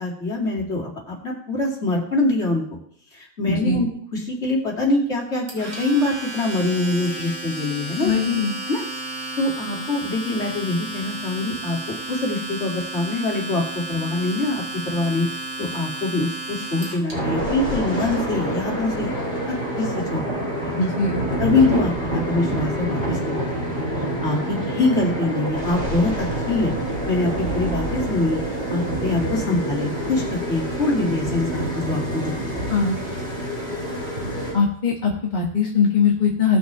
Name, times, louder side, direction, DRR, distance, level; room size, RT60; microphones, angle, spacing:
voice 1, 0.0-2.6 3.1-3.9 4.3-8.1 8.7-8.8 9.4-11.8 12.1-13.6 13.9-15.2 15.6-19.1 19.5-20.7 21.4-23.7 24.2-26.7 27.0-28.4 28.7-32.2 32.5-32.6, left 2 dB, 50° left, -2 dB, 3.0 m, -24 dB
voice 2, 3.5-3.8 8.0-8.6 20.8-21.2 29.4-29.6 32.7-33.0 34.5-36.6, left 5 dB, 35° left, -3 dB, 1.8 m, -21 dB
Domestic sounds home sounds, 5.5-17.1, right 2 dB, 85° right, 3.5 m, -33 dB
sound 1, 17.1-34.5, right 1 dB, 45° right, 5.7 m, -26 dB
18.5 x 6.4 x 3.4 m, 0.62 s
omnidirectional pair, 1.4 m